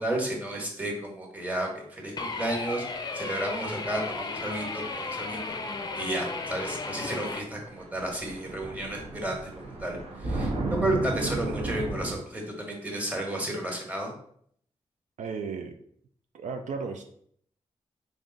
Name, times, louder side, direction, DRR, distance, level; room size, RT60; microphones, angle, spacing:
voice 1, 0.0-2.9 3.1-5.6 6.0-14.1, right 1 dB, 10° right, 0 dB, 1.2 m, -32 dB
sound 1, 2.2-7.4, left 3 dB, 35° left, 0.5 m, -34 dB
sound 2, 7.6-12.2, right 2 dB, 55° right, 1.0 m, -33 dB
voice 2, 10.8-11.2 15.2-15.7 16.3-17.0, right 5 dB, 75° right, 5 dB, 0.4 m, -35 dB
3.5 x 2.5 x 3.9 m, 0.65 s
cardioid pair, 60°, 12 cm